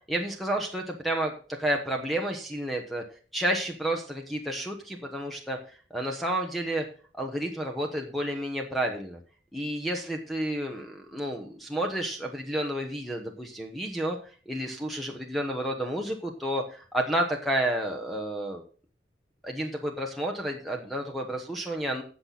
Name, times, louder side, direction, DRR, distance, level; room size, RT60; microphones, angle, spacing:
voice 1, 0.1-1.3 1.6-3.0 3.3-5.6 5.9-6.8 7.1-9.2 9.5-14.2 14.5-18.6 19.4-22.0, right 1 dB, ahead, 2 dB, 1.1 m, -30 dB
16.5 x 6.0 x 4.0 m, 0.41 s
head